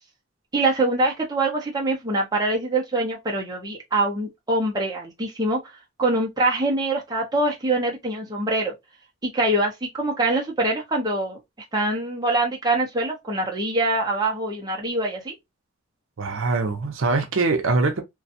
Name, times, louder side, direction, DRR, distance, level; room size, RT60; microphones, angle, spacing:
voice 1, 0.5-5.6 6.0-8.7 9.2-11.4 11.7-15.3, right 2 dB, 20° right, 0.6 m, -24 dB
voice 2, 16.2-18.0, right 3 dB, 70° right, 0.6 m, -23 dB
2.5 x 2.2 x 2.5 m
head